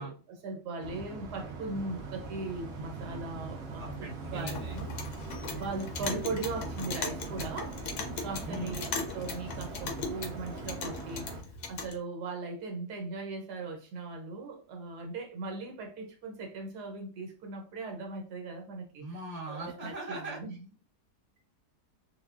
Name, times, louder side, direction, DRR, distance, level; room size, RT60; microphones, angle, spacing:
voice 1, 0.0-3.9 4.3-4.9 5.2-7.7 8.2-11.3 11.7-19.0 19.5-20.6, right 3 dB, 80° right, 1.3 m, -39 dB
sound 1, 0.8-11.4, right 3 dB, 55° right, 0.8 m, -41 dB
voice 2, 3.8-4.7 8.5-8.7 19.0-20.4, right 2 dB, 25° right, 1.0 m, -40 dB
Clock, 4.2-12.0, left 4 dB, 75° left, 1.1 m, -39 dB
3.8 x 2.1 x 2.3 m
omnidirectional pair, 1.7 m